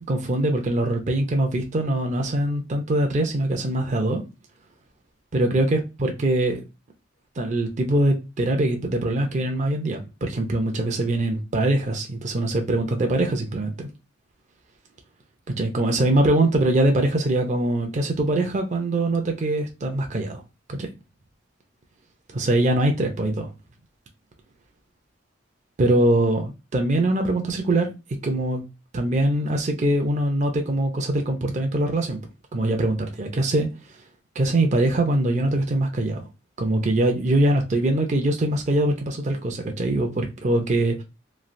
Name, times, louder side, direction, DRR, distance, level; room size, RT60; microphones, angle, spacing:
voice 1, 0.1-4.2 5.3-6.6 7.4-13.9 15.6-20.4 20.7-20.9 22.3-23.5 25.8-27.9 28.2-28.6 28.9-32.2 32.5-33.7 34.4-36.3 36.6-41.0, right 1 dB, 40° right, 0.5 m, -23 dB
3.2 x 2.4 x 2.5 m
head